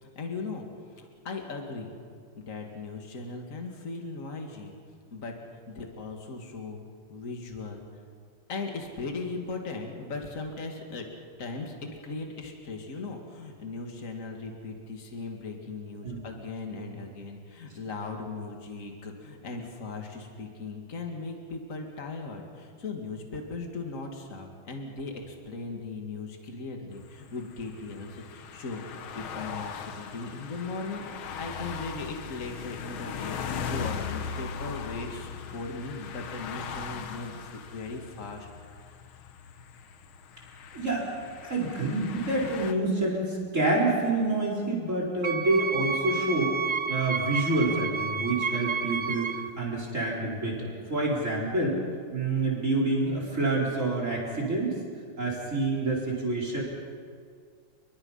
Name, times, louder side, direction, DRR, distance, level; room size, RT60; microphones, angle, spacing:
voice 1, 0.0-1.9 2.4-4.7 5.1-5.3 5.7-6.8 7.1-7.8 8.5-11.0 11.4-28.8 29.1-31.0 31.4-33.4 33.6-38.5, left 3 dB, 35° left, 2 dB, 2.6 m, -38 dB
sound 1, 26.9-42.7, left 7 dB, 75° left, 1.9 m, -39 dB
voice 2, 40.7-41.1 41.4-46.6 46.9-51.8 52.1-54.7 55.2-56.6, right 2 dB, 35° right, -2 dB, 4.6 m, -27 dB
Wind instrument woodwind instrument, 45.2-49.5, right 5 dB, 60° right, 0.5 m, -30 dB
29.5 x 22.0 x 5.7 m, 2.1 s
omnidirectional pair, 2.3 m